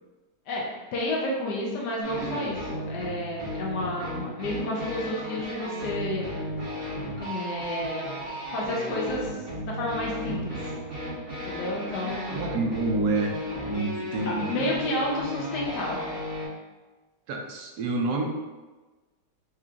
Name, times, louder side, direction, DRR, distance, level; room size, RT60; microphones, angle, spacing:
voice 1, 0.9-6.4 7.2-8.1 8.5-9.4 9.7-10.6 11.4-12.4 14.3-16.1, left 1 dB, 70° left, -3 dB, 1.3 m, -31 dB
sound 1, 2.0-16.5, equal, 55° right, 2.0 m, -34 dB
voice 2, 12.3-13.3 13.6-14.7 17.3-18.2, right 3 dB, 75° right, 1 dB, 1.0 m, -28 dB
4.6 x 2.9 x 2.4 m, 1.2 s
omnidirectional pair, 1.9 m